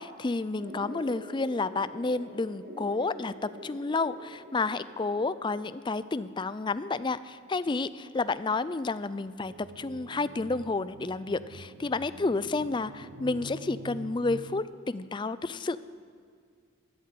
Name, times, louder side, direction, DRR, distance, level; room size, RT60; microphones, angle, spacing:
voice 1, 0.0-15.8, left 3 dB, 25° left, 15 dB, 0.4 m, -30 dB
sound 1, 0.6-5.6, equal, 45° right, 1.7 m, -46 dB
sound 2, 9.4-14.6, right 3 dB, 85° right, 0.7 m, -46 dB
13.0 x 11.0 x 8.4 m, 2.2 s
head